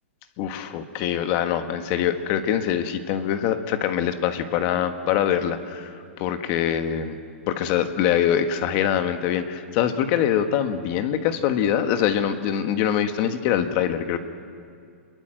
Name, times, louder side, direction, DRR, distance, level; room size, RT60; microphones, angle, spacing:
voice 1, 0.4-7.2 7.5-14.2, left 9 dB, 30° left, 8 dB, 1.5 m, -24 dB
27.5 x 22.5 x 7.7 m, 2.4 s
hypercardioid pair, 165°, 7 cm